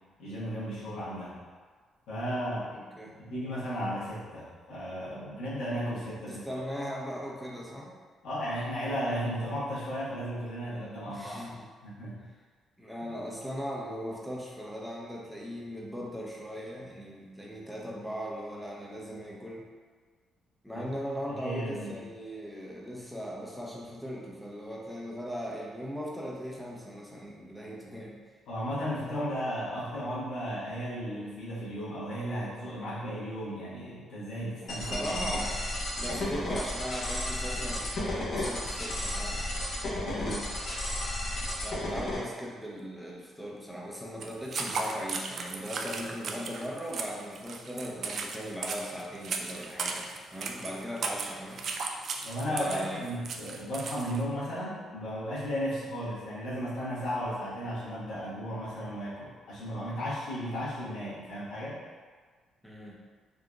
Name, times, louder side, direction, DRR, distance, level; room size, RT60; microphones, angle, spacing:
voice 1, 0.2-1.4 2.1-2.7 3.2-6.6 8.2-11.5 11.8-12.3 20.7-20.8 21.3-22.0 28.5-35.5 40.0-40.4 52.2-61.8, equal, 85° left, -10 dB, 1.2 m, -35 dB
voice 2, 2.7-3.2 6.3-7.9 11.0-11.7 12.8-19.6 20.6-28.2 34.6-35.5 35.9-39.4 41.6-51.6 52.5-53.2 62.6-63.0, equal, ahead, -3 dB, 0.6 m, -39 dB
sound 1, 34.7-42.2, left 1 dB, 55° left, 0.8 m, -33 dB
sound 2, 44.2-54.2, right 4 dB, 60° right, 0.3 m, -36 dB
3.7 x 2.5 x 2.3 m, 1.5 s
cardioid pair, 90°, 0 cm